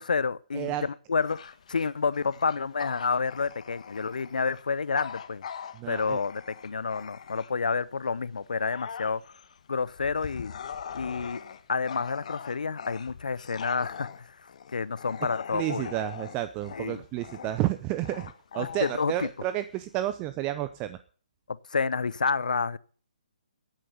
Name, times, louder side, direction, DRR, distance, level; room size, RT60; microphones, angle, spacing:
voice 1, 0.0-5.4 5.9-9.2 9.7-10.5 10.9-11.4 11.7-15.9 16.8-17.0 18.6-19.3 21.5-22.8, left 5 dB, 75° left, 0.7 m, -29 dB
voice 2, 0.5-0.9 5.7-6.2 15.5-21.0, right 14 dB, 25° right, 0.6 m, -31 dB
Bark / Growling, 1.2-7.7 8.2-20.1, left 7 dB, 55° left, 1.5 m, -42 dB
14.0 x 9.0 x 6.8 m
figure-of-eight pair, 140°, 4 cm